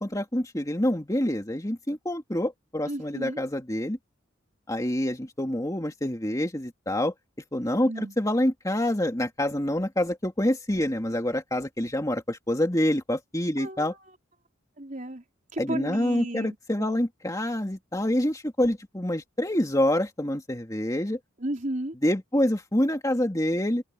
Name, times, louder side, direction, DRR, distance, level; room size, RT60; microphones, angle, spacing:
voice 1, 0.0-4.0 4.7-7.1 7.5-13.9 15.6-21.2 22.0-23.8, left 1 dB, 15° left, 2.4 m, -26 dB
voice 2, 2.9-3.4 7.8-8.1 13.6-14.1 14.8-15.2 15.5-17.0 21.4-21.9, right 1 dB, 40° right, 4.5 m, -34 dB
open air
head